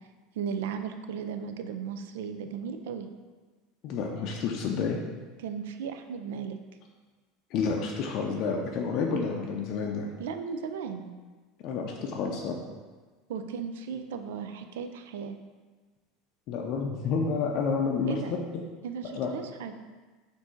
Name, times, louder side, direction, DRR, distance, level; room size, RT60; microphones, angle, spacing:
voice 1, 0.3-3.1 5.4-6.6 10.2-11.1 13.3-15.4 18.1-18.4 18.8-19.8, right 6 dB, 90° right, 8 dB, 0.4 m, -36 dB
voice 2, 3.8-5.0 7.5-10.1 11.6-12.6 16.5-18.4 19.1-19.3, left 5 dB, 55° left, 0 dB, 0.5 m, -29 dB
4.4 x 2.6 x 4.4 m, 1.3 s
supercardioid pair, 135°, 0 cm